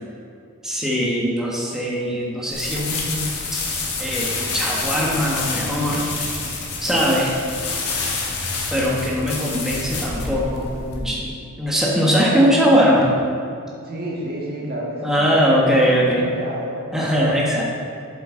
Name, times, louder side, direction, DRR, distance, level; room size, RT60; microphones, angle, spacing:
voice 1, 0.6-3.5 4.0-6.1 6.8-7.4 8.7-13.1 15.0-16.2 16.9-17.6, equal, ahead, -4 dB, 1.2 m, -20 dB
sound 1, 2.5-11.0, left 3 dB, 90° left, 1.4 m, -28 dB
voice 2, 9.8-10.3 12.3-12.6 13.8-16.9, right 1 dB, 45° right, -4 dB, 1.7 m, -31 dB
7.8 x 7.8 x 3.8 m, 2.5 s
head